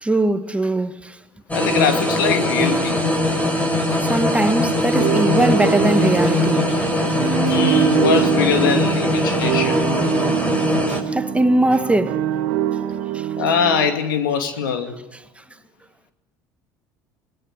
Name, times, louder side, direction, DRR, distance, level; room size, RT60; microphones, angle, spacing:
voice 1, 0.0-1.2 4.0-7.3 10.9-12.3 13.1-13.3, right 1 dB, 10° right, 1.7 m, -21 dB
voice 2, 1.5-3.0 7.4-9.9 13.4-15.0, left 7 dB, 85° left, 2.5 m, -22 dB
sound 1, 1.5-11.0, left 1 dB, 15° left, 6.0 m, -21 dB
sound 2, 5.0-13.9, right 11 dB, 70° right, 2.2 m, -24 dB
25.5 x 20.0 x 9.8 m
hypercardioid pair, 70°, 11 cm